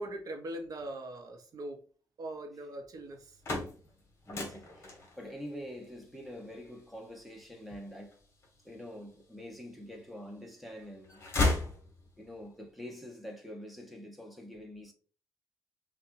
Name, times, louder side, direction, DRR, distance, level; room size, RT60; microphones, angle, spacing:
voice 1, 0.0-1.8 2.2-3.4, right 1 dB, 55° right, 0.9 m, -41 dB
sound 1, 3.1-9.1 9.7-10.5 10.8-12.4, left 2 dB, 35° left, 1.5 m, -35 dB
voice 2, 4.2-8.2 8.6-11.2 12.2-14.9, equal, ahead, 1.0 m, -45 dB
5.6 x 2.4 x 2.6 m
cardioid pair, 120°, 7 cm